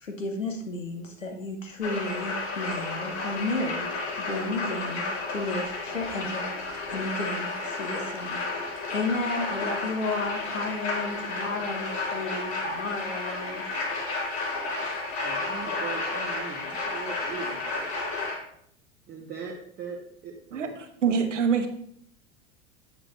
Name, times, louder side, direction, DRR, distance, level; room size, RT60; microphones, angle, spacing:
voice 1, 0.0-3.9 4.2-5.0 5.3-6.6 6.9-8.4 8.9-13.6, left 2 dB, 85° left, 3 dB, 1.4 m, -32 dB
sound 1, 1.8-18.4, left 3 dB, 60° left, 2.7 m, -32 dB
voice 2, 15.2-17.6 19.1-20.8 21.1-21.2, right 5 dB, 25° right, -1 dB, 1.1 m, -40 dB
voice 3, 21.0-21.7, right 6 dB, 75° right, 6 dB, 1.1 m, -24 dB
8.1 x 7.6 x 3.2 m, 0.68 s
figure-of-eight pair, 85°, 37 cm